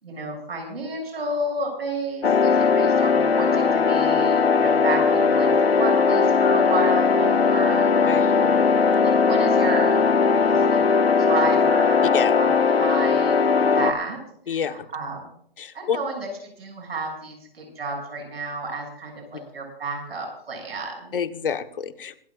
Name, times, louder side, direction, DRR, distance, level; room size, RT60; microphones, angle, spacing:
voice 1, 0.0-7.9 8.2-8.3 9.0-10.1 10.4-10.8 11.2-12.5 12.8-14.2 14.5-14.6 14.9-15.3 15.7-16.3 16.6-21.1, right 2 dB, 80° right, 1 dB, 7.4 m, -31 dB
sound 1, 2.2-13.9, left 5 dB, 90° left, 1.7 m, -19 dB
voice 2, 8.1-8.7 12.1-12.4 14.5-14.9 15.6-16.0 21.1-22.2, left 7 dB, 65° left, 9 dB, 1.4 m, -28 dB
24.5 x 14.0 x 2.6 m, 0.64 s
hypercardioid pair, 165°, 30 cm